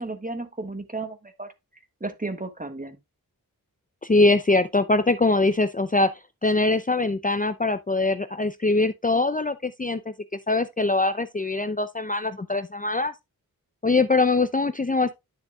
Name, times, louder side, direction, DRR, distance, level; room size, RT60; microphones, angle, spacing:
voice 1, 0.0-1.5 2.0-3.0, right 2 dB, 25° right, 1.6 m, -33 dB
voice 2, 4.0-10.0 10.5-13.1 13.8-15.1, left 2 dB, 20° left, 0.6 m, -22 dB
11.0 x 6.7 x 2.4 m
wide cardioid pair, 60°, 36 cm